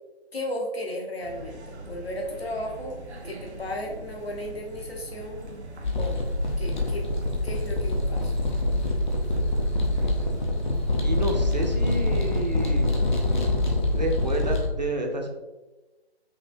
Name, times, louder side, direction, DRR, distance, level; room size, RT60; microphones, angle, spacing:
voice 1, 0.3-5.5 5.9-6.2 6.6-7.0 7.4-8.3, left 1 dB, 70° left, -1 dB, 1.2 m, -35 dB
sound 1, 1.2-14.5, right 2 dB, 90° right, 0.7 m, -42 dB
sound 2, 5.8-14.7, left 2 dB, 45° left, 0.7 m, -25 dB
voice 2, 11.0-13.0 13.9-15.3, right 1 dB, 45° right, 3 dB, 0.5 m, -30 dB
5.5 x 2.4 x 2.6 m, 1.1 s
figure-of-eight pair, 150°, 32 cm